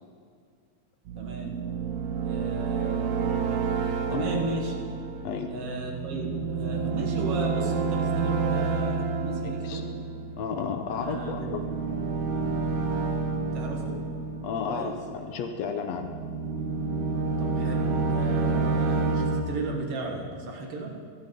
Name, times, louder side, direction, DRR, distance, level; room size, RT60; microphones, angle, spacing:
sound 1, 1.1-15.3 15.9-19.4, right 4 dB, 75° right, 1.4 m, -29 dB
voice 1, 1.2-1.6 2.2-3.7 4.1-4.8 5.5-9.9 10.9-11.5 13.5-14.0 14.7-14.9 17.4-21.0, right 2 dB, 55° right, 0 dB, 2.2 m, -35 dB
voice 2, 9.4-9.8 10.4-11.6 14.4-16.1, left 6 dB, 75° left, 6 dB, 1.7 m, -32 dB
12.5 x 9.1 x 5.3 m, 2.1 s
omnidirectional pair, 3.4 m